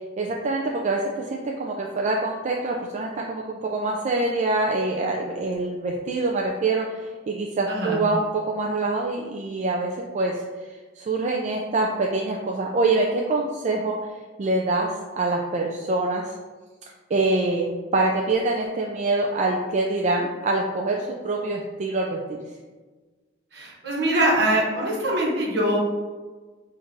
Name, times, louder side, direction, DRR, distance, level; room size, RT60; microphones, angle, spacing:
voice 1, 0.2-10.4 11.0-14.0 14.4-14.9 15.2-16.3 17.1-22.4, right 2 dB, 40° right, 0 dB, 0.3 m, -25 dB
voice 2, 7.7-8.0 23.5-25.8, right 1 dB, 60° right, -4 dB, 1.1 m, -23 dB
6.0 x 2.5 x 2.6 m, 1.3 s
head